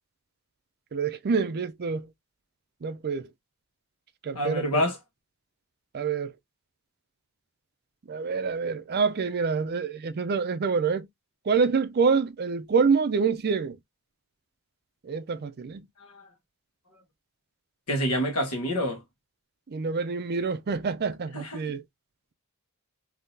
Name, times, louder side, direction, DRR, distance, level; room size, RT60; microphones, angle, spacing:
voice 1, 0.9-2.1 2.8-3.3 4.2-4.8 5.9-6.3 8.1-11.1 11.5-13.8 15.0-15.8 19.7-21.8, right 5 dB, 45° right, 0.5 m, -26 dB
voice 2, 4.3-5.0 16.1-16.3 17.9-19.0 21.3-21.6, equal, 75° left, 1.3 m, -27 dB
3.6 x 2.8 x 2.6 m
head